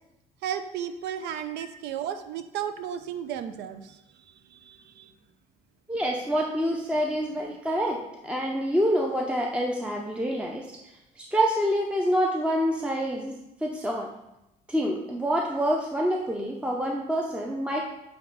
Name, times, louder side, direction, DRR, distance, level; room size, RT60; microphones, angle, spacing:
voice 1, 0.4-4.0 4.5-5.1, right 9 dB, 80° right, 10 dB, 0.6 m, -34 dB
voice 2, 5.9-8.0 8.2-10.7 11.2-13.3 13.6-14.1 14.7-17.8, equal, 5° right, 0 dB, 0.5 m, -26 dB
8.7 x 3.0 x 3.9 m, 0.91 s
cardioid pair, 110°, 17 cm